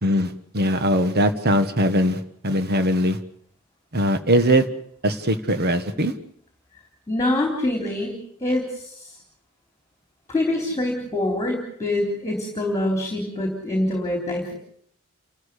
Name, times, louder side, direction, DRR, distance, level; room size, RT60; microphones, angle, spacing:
voice 1, 0.0-3.2 3.9-4.7 5.0-6.1, equal, 50° right, 10 dB, 1.5 m, -21 dB
voice 2, 7.1-8.2 8.4-9.2 10.3-14.5, left 1 dB, 15° left, 2 dB, 3.6 m, -25 dB
29.5 x 13.5 x 8.3 m, 0.67 s
head